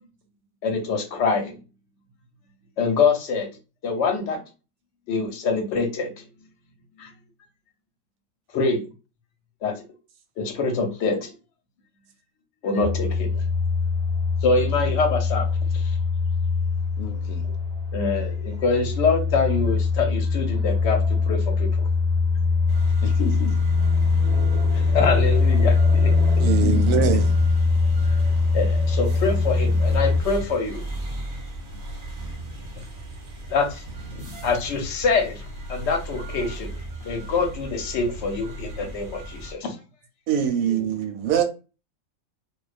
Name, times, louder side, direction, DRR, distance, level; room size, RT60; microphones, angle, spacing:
voice 1, 0.6-1.6 2.8-3.5 3.8-4.4 5.1-6.2 7.0-7.1 8.5-8.8 9.6-9.7 10.4-11.3 12.6-13.4 14.4-15.5 15.7-15.9 17.9-21.9 24.7-26.1 28.5-30.8 33.5-33.8 34.4-35.4 35.7-36.7 37.0-39.8, left 4 dB, 60° left, 0.9 m, -25 dB
sound 1, 12.8-30.2, left 4 dB, 65° right, 0.4 m, -22 dB
voice 2, 17.0-17.6 23.0-23.6 26.5-27.2 31.7-31.8 34.1-34.4 40.6-40.9, left 5 dB, 85° left, 1.0 m, -32 dB
sound 2, 22.7-39.5, right 1 dB, 45° right, 0.8 m, -37 dB
voice 3, 26.4-27.2 40.3-41.4, right 9 dB, 85° right, 1.0 m, -23 dB
2.3 x 2.2 x 2.3 m
omnidirectional pair, 1.4 m